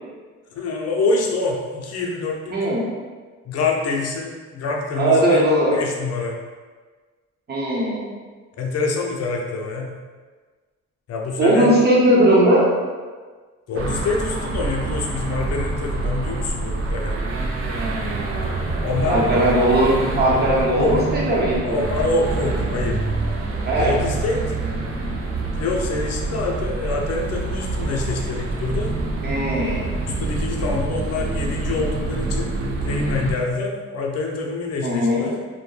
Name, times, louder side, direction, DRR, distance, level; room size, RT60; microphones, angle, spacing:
voice 1, 0.5-2.6 3.5-6.4 8.6-9.9 11.1-11.7 13.7-17.2 18.8-19.2 20.8-21.0 21.6-23.0 23.8-24.4 25.5-28.9 30.1-32.6 32.8-35.4, left 3 dB, 55° left, 0 dB, 0.5 m, -26 dB
voice 2, 2.5-2.8 5.0-5.7 7.5-8.0 11.4-12.7 19.1-21.8 23.7-23.9 29.2-29.8 34.8-35.3, right 1 dB, 35° right, -5 dB, 0.8 m, -18 dB
sound 1, 13.7-33.3, right 2 dB, 50° right, 0.5 m, -26 dB
2.2 x 2.1 x 3.1 m, 1.4 s
cardioid pair, 90°, 30 cm